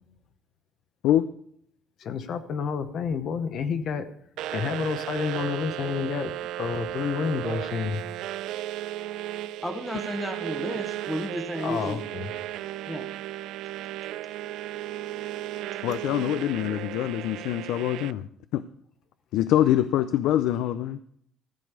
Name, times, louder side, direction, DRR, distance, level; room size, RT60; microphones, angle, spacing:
voice 1, 2.0-4.1 4.5-8.0 11.6-12.3 12.7-12.8 15.7-15.8, left 6 dB, 45° left, 10 dB, 0.8 m, -30 dB
sound 1, 4.4-18.1, right 13 dB, 70° right, 0.4 m, -35 dB
voice 2, 9.6-12.0 12.9-13.1, equal, ahead, 5 dB, 1.0 m, -33 dB
voice 3, 15.8-18.6 19.3-21.0, left 12 dB, 75° left, 12 dB, 0.5 m, -24 dB
14.5 x 5.1 x 8.1 m, 0.67 s
cardioid pair, 175°, 0 cm